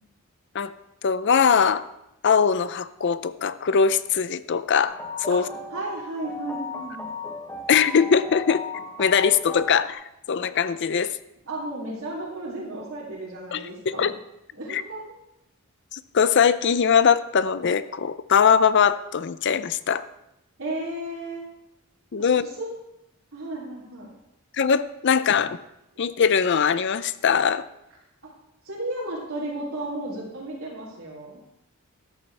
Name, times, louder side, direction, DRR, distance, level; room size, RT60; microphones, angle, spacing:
voice 1, 1.0-1.8 2.2-5.5 7.7-8.6 9.0-11.1 13.5-13.7 14.0-14.1 14.7-14.8 15.9-20.0 22.1-22.4 24.6-25.6 26.0-27.6, left 6 dB, 55° left, 14 dB, 0.5 m, -21 dB
sound 1, 4.8-9.9, left 3 dB, 10° left, 1.0 m, -36 dB
voice 2, 5.7-7.0 11.5-14.1 14.5-15.0 20.6-21.4 22.2-22.7 23.3-24.1 28.6-31.5, right 1 dB, 70° right, -7 dB, 3.1 m, -34 dB
13.5 x 11.5 x 3.4 m, 0.85 s
head